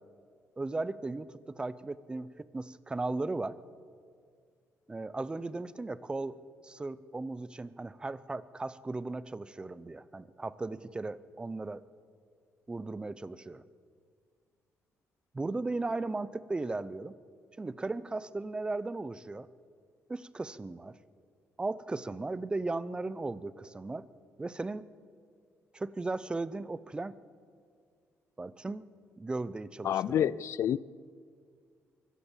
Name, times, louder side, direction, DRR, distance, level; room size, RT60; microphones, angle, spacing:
voice 1, 0.6-3.6 4.9-6.3 6.6-11.8 12.7-13.6 15.3-17.2 17.6-19.5 20.1-21.0 21.6-24.0 24.4-24.9 25.7-27.2 28.4-28.9 29.2-30.3, right 3 dB, 20° right, 16 dB, 0.7 m, -36 dB
voice 2, 29.8-30.8, left 10 dB, 65° left, 21 dB, 0.5 m, -28 dB
23.5 x 17.0 x 7.3 m, 2.1 s
cardioid pair, 115°, 5 cm